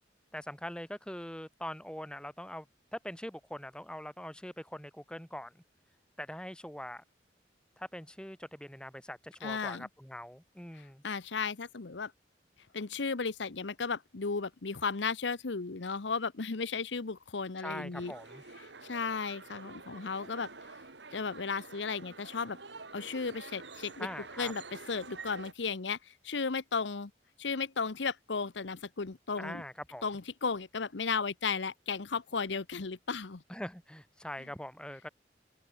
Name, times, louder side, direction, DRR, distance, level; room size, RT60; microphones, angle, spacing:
voice 1, 0.3-2.7 2.9-5.6 6.2-7.0 7.8-11.0 17.6-18.4 24.0-24.5 29.4-30.0 33.5-35.1, left 1 dB, 5° left, 5.3 m, -42 dB
voice 2, 9.4-9.9 11.0-12.1 12.7-18.1 18.8-20.5 21.1-22.6 22.9-24.1 24.4-24.6 24.9-27.1 27.4-29.6 30.0-33.4, left 5 dB, 80° left, 0.9 m, -35 dB
sound 1, 18.0-25.5, right 4 dB, 75° right, 2.9 m, -48 dB
open air
head